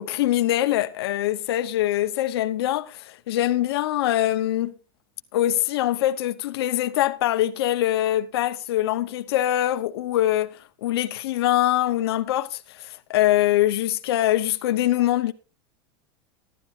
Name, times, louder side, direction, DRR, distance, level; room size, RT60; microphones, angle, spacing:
voice 1, 0.0-4.7 5.3-15.3, left 13 dB, 85° left, 0.9 m, -23 dB
16.0 x 12.0 x 2.5 m
supercardioid pair, 155°, 13 cm